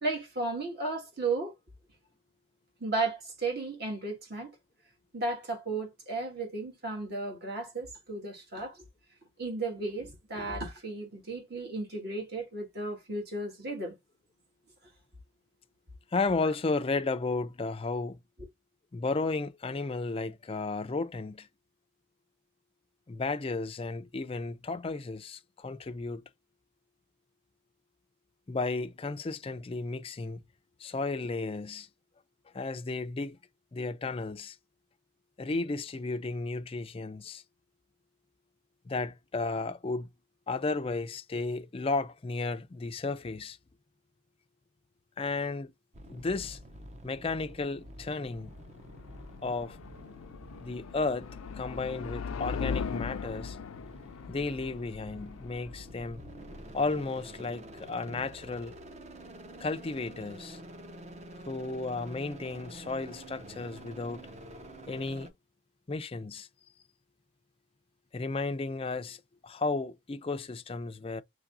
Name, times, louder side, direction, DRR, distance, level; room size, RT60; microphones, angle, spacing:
voice 1, 0.0-1.5 2.8-4.5 5.1-8.8 9.4-13.9, right 3 dB, 50° right, 1.8 m, -34 dB
voice 2, 16.1-18.2 18.9-21.5 23.1-26.2 28.5-30.4 30.8-31.9 32.5-33.4 33.7-34.6 35.4-37.4 38.9-40.1 40.5-43.6 45.2-45.7 46.1-46.6 47.0-48.5 49.4-49.8 50.6-53.6 54.3-56.2 56.7-58.8 59.6-60.6 61.5-64.3 64.9-65.3 65.9-66.5 68.1-71.2, left 3 dB, 25° left, 0.4 m, -33 dB
sound 1, 45.9-65.3, right 1 dB, 35° right, 0.7 m, -48 dB
sound 2, 48.2-57.1, left 6 dB, 90° left, 0.4 m, -40 dB
5.8 x 3.2 x 2.5 m
head